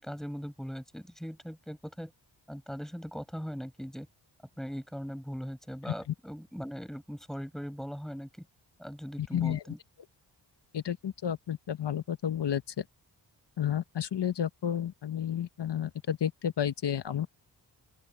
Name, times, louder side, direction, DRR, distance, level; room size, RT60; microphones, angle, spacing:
voice 1, 0.0-2.1 2.5-4.1 4.6-8.5 8.8-9.8, equal, ahead, 5.3 m, -40 dB
voice 2, 9.3-9.6 10.7-12.8 13.6-17.3, left 9 dB, 70° left, 1.1 m, -31 dB
open air
wide cardioid pair, 95°, 43 cm